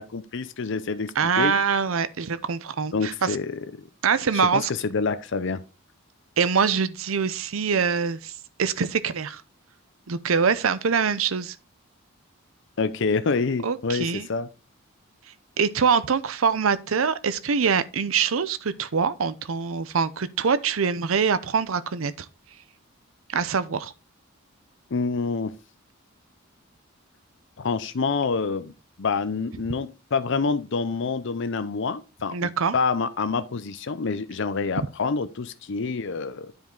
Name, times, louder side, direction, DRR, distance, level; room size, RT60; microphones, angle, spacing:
voice 1, 0.0-1.5 2.9-3.9 4.3-5.6 12.8-14.5 24.9-25.5 27.6-28.7 29.0-36.5, left 4 dB, 60° left, 0.6 m, -27 dB
voice 2, 1.2-3.4 4.0-4.7 6.4-8.3 8.6-9.4 10.1-11.6 13.6-14.3 15.6-22.3 23.3-23.9 32.3-32.7, right 6 dB, 75° right, 0.6 m, -24 dB
9.4 x 5.2 x 3.8 m
head